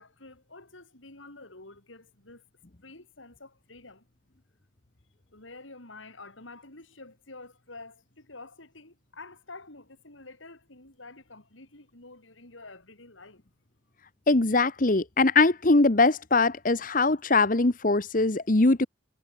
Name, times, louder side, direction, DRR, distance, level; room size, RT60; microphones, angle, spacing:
voice 1, 0.0-2.4 2.8-4.1 5.3-13.4, left 3 dB, 85° left, 5.4 m, -48 dB
voice 2, 14.3-18.9, left 3 dB, 45° left, 1.1 m, -22 dB
head